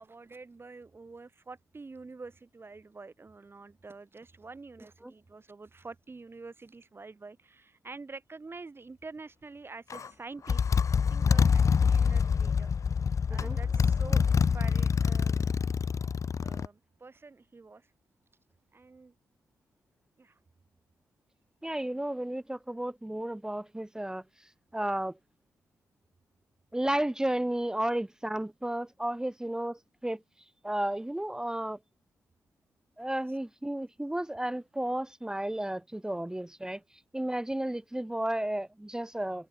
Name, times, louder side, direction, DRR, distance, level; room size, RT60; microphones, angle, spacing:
voice 1, 0.0-10.7 11.1-12.7 13.3-15.6 16.4-17.9 18.7-19.1 20.2-20.4, right 3 dB, 40° right, 5.8 m, -47 dB
Motorcycle, 9.9-10.1 10.5-16.7, left 6 dB, 55° left, 1.1 m, -26 dB
sound 1, 13.4-16.6 17.0-17.1 17.3-17.4, right 8 dB, 70° right, 7.6 m, -57 dB
voice 2, 21.6-24.2 24.7-25.2 26.7-30.2 30.6-31.8 33.0-36.8 37.1-39.5, right 1 dB, 10° right, 1.1 m, -33 dB
supercardioid pair, 50°, 6 cm